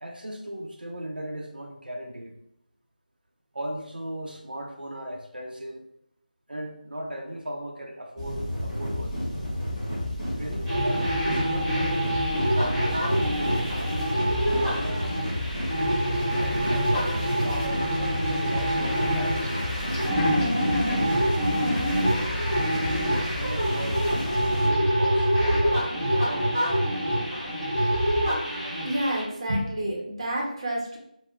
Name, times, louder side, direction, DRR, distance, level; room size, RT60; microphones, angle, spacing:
voice 1, 0.0-2.4 3.5-5.8 6.5-9.2 10.4-14.0 14.5-15.1 16.4-19.7 20.2-21.4 22.7-24.2 24.5-26.7, right 1 dB, 85° right, 1 dB, 0.6 m, -37 dB
sound 1, 8.2-24.7, left 1 dB, 20° left, 0.8 m, -31 dB
sound 2, 10.6-29.2, equal, 10° right, 0.9 m, -26 dB
voice 2, 28.8-31.0, right 1 dB, 35° right, -2 dB, 0.7 m, -29 dB
2.3 x 2.1 x 3.4 m, 0.75 s
figure-of-eight pair, 170°, 5 cm